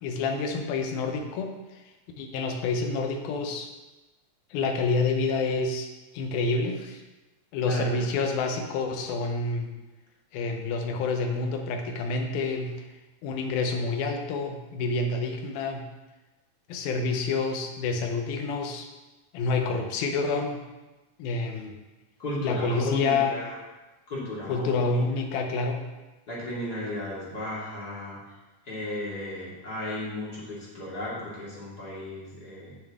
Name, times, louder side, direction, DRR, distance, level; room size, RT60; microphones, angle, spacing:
voice 1, 0.0-1.8 2.2-3.7 4.5-5.9 6.1-7.0 7.5-9.7 10.3-12.9 13.2-15.9 16.7-18.9 19.3-20.6 21.2-21.8 22.4-23.3 24.5-25.8, left 3 dB, 90° left, 4 dB, 2.8 m, -28 dB
voice 2, 7.6-8.1 22.2-23.6 24.1-25.0 26.3-28.2 28.6-32.7, left 1 dB, 30° left, -7 dB, 2.4 m, -34 dB
9.2 x 8.2 x 3.6 m, 1.1 s
omnidirectional pair, 4.1 m